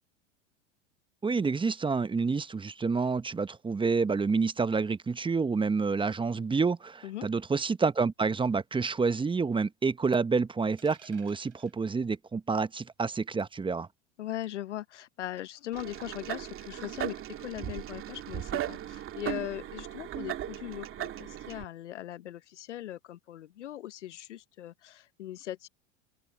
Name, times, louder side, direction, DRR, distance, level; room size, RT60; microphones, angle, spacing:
voice 1, 1.2-13.9, right 4 dB, 15° right, 1.0 m, -28 dB
sound 1, 10.8-11.8 13.4-13.6 15.4-15.7, right 8 dB, 85° right, 5.5 m, -57 dB
voice 2, 14.2-25.7, left 13 dB, 85° left, 0.9 m, -40 dB
sound 2, 15.7-21.6, right 12 dB, 35° right, 2.4 m, -37 dB
open air
hypercardioid pair, 90°, 35 cm